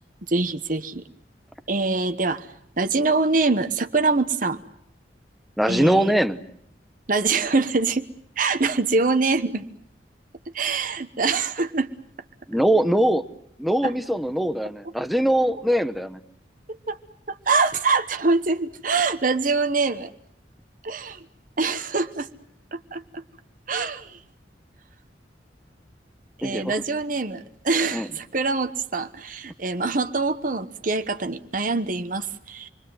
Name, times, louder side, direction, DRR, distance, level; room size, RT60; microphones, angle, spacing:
voice 1, 0.3-1.0 1.7-2.5 2.8-4.6 5.7-6.1 7.1-8.1 8.4-9.6 10.5-11.9 13.8-13.9 16.9-17.0 17.3-20.1 20.8-21.2 21.6-22.3 22.7-23.2 23.7-24.2 26.4-32.7, right 3 dB, 50° right, 9 dB, 1.2 m, -24 dB
voice 2, 5.6-6.4 12.5-13.2 13.6-16.2 26.4-26.7 27.9-28.1, right 1 dB, ahead, 9 dB, 1.0 m, -22 dB
28.0 x 23.0 x 7.8 m, 0.69 s
head